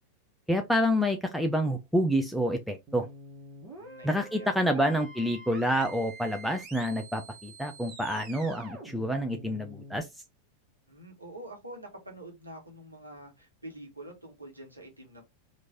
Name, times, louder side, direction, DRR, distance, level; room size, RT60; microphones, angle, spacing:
voice 1, 0.5-3.1 4.0-10.1, equal, ahead, 0.4 m, -28 dB
sound 1, 2.9-10.0, right 2 dB, 30° right, 1.2 m, -47 dB
voice 2, 3.7-4.8 10.9-15.2, right 1 dB, 85° right, 1.1 m, -46 dB
3.1 x 2.5 x 3.3 m
figure-of-eight pair, 90°, 0 cm